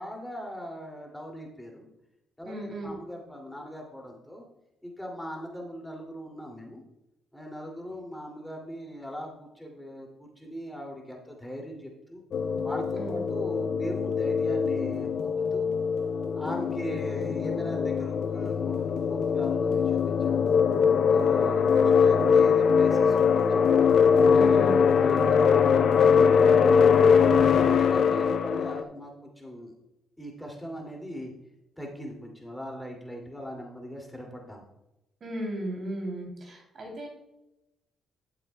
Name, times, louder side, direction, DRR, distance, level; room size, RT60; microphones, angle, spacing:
voice 1, 0.0-1.9 2.4-4.4 4.8-6.8 7.3-12.2 12.6-15.7 16.3-20.6 21.1-23.9 24.4-27.1 27.5-29.7 30.2-31.3 31.8-34.6, equal, 5° left, 0 dB, 2.6 m, -39 dB
voice 2, 2.4-2.9 12.9-13.2 24.3-24.8 35.2-37.1, right 1 dB, 50° right, 1 dB, 3.1 m, -35 dB
sound 1, 12.3-28.8, left 6 dB, 60° left, 0.7 m, -22 dB
12.5 x 7.8 x 2.3 m, 0.91 s
cardioid pair, 90°, 0 cm